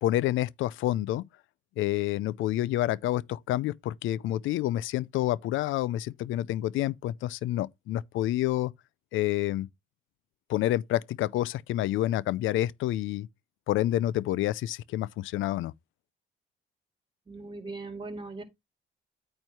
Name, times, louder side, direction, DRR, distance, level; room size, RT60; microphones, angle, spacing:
voice 1, 0.0-1.2 1.8-8.7 9.1-9.7 10.5-13.3 13.7-15.7, left 14 dB, 80° left, 0.5 m, -28 dB
voice 2, 17.3-18.4, right 3 dB, 25° right, 2.1 m, -39 dB
9.0 x 3.2 x 5.6 m
cardioid pair, 90°, 20 cm